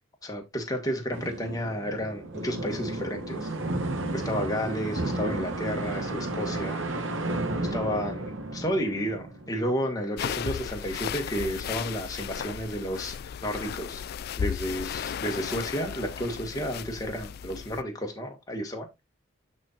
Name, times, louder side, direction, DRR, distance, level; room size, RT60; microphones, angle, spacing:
voice 1, 0.2-3.5 4.1-7.1 7.7-13.2 13.4-14.0 14.4-19.0, equal, 20° left, 1.7 m, -32 dB
sound 1, 1.1-9.9, right 2 dB, 75° right, 1.2 m, -33 dB
sound 2, 10.2-17.8, left 8 dB, 50° left, 0.3 m, -35 dB
12.5 x 4.4 x 2.5 m
head